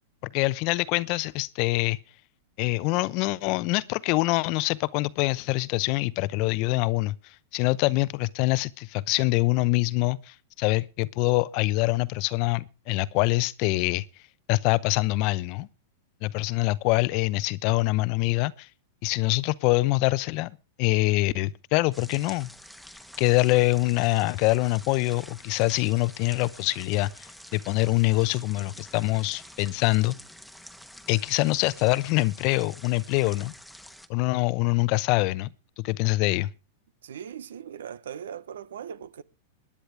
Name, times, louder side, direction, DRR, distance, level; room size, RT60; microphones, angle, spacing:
voice 1, 0.2-2.0 2.6-14.0 14.5-15.7 16.2-18.7 19.0-20.5 20.8-22.5 23.2-30.2 31.1-33.5 34.1-35.5 35.8-36.5, left 21 dB, 50° left, 0.7 m, -25 dB
sound 1, 21.9-34.1, equal, ahead, 1.2 m, -48 dB
voice 2, 37.0-39.2, right 8 dB, 85° right, 1.0 m, -39 dB
21.5 x 10.0 x 3.4 m
hypercardioid pair, 120°, 0 cm